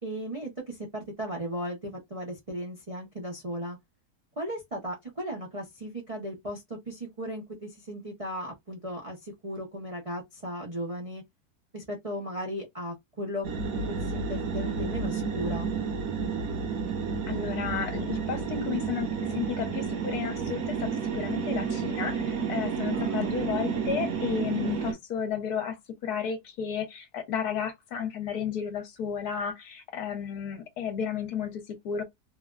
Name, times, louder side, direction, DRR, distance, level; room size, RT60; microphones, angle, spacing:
voice 1, 0.0-3.8 4.4-11.2 11.7-13.5 13.7-15.7 22.9-23.3, equal, 40° right, 0.4 m, -36 dB
sound 1, 13.4-24.9, right 5 dB, 60° right, 1.1 m, -31 dB
voice 2, 17.3-32.0, left 7 dB, 70° left, 1.2 m, -33 dB
3.2 x 2.3 x 2.3 m
omnidirectional pair, 1.8 m